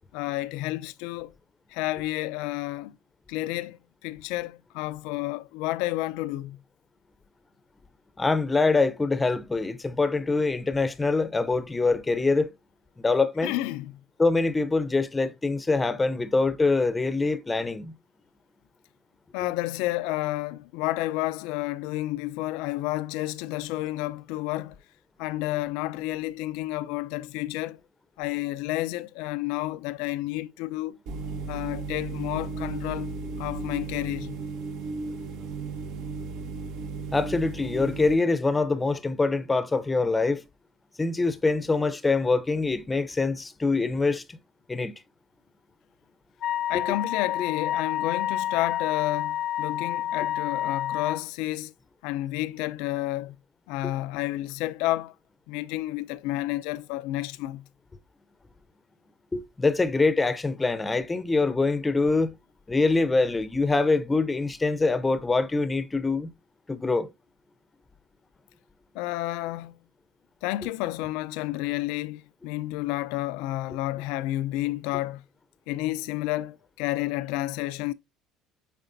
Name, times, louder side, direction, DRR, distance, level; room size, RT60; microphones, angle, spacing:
voice 1, 0.1-1.3 1.7-3.0 3.3-6.6 13.4-14.0 19.3-24.8 25.2-27.8 28.2-31.0 31.5-33.1 33.4-34.4 46.7-51.7 52.0-53.4 53.7-55.1 55.5-57.7 68.9-69.8 70.4-75.2 75.7-77.9, left 17 dB, 85° left, 0.6 m, -30 dB
voice 2, 8.2-12.5 13.0-13.5 14.2-17.9 37.1-40.4 41.0-44.4 44.7-44.9 59.3-62.3 62.7-66.3 66.7-67.1, left 3 dB, 15° left, 0.7 m, -24 dB
sound 1, 31.1-38.1, right 3 dB, 65° right, 1.4 m, -35 dB
Wind instrument woodwind instrument, 46.4-51.2, left 12 dB, 45° left, 0.4 m, -29 dB
9.3 x 4.1 x 2.7 m
cardioid pair, 145°, 0 cm